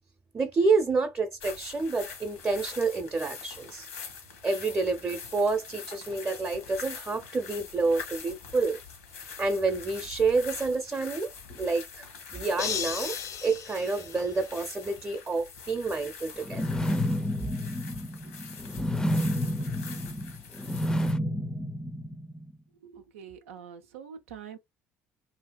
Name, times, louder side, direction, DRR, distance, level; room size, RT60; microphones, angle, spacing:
voice 1, 0.3-3.9 4.4-8.8 9.4-13.2 13.4-16.6, right 3 dB, 25° right, 0.7 m, -28 dB
sound 1, 1.4-21.1, left 6 dB, 85° left, 1.1 m, -44 dB
sound 2, 12.6-14.9, left 8 dB, 55° left, 0.6 m, -36 dB
sound 3, 16.4-22.5, equal, 10° left, 0.5 m, -30 dB
voice 2, 22.8-24.6, right 7 dB, 85° right, 0.6 m, -45 dB
2.8 x 2.7 x 2.2 m
hypercardioid pair, 60°, 7 cm